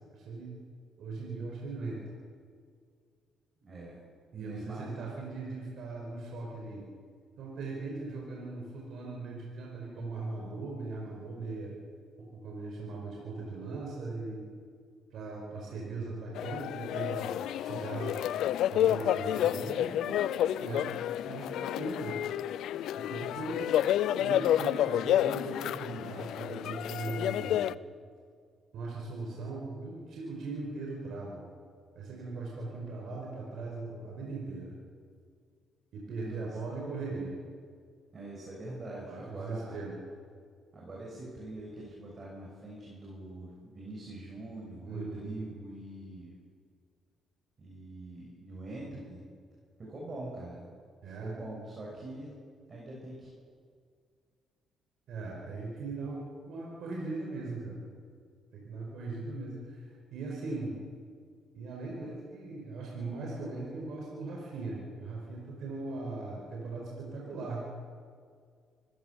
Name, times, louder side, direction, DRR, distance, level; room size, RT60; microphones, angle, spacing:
voice 1, 0.1-0.5 1.0-2.0 4.3-6.8 7.4-11.8 12.2-14.5 15.1-18.2 18.7-20.9 21.2-22.2 23.0-23.7 24.2-27.6 28.7-31.4 31.9-34.7 35.9-37.4 39.1-40.0 44.8-45.4 51.0-51.4 55.1-57.9 58.5-60.8 61.5-67.6, right 3 dB, 75° right, -2 dB, 5.1 m, -39 dB
voice 2, 3.6-4.0 4.3-5.1 36.2-36.6 38.1-39.8 40.7-46.4 47.6-49.2 49.8-50.7 51.2-52.3 52.7-53.3, right 1 dB, 40° right, -3 dB, 6.8 m, -44 dB
sound 1, 16.4-27.7, left 11 dB, 80° left, 0.5 m, -30 dB
25.5 x 16.0 x 7.1 m, 2.1 s
cardioid pair, 90°, 0 cm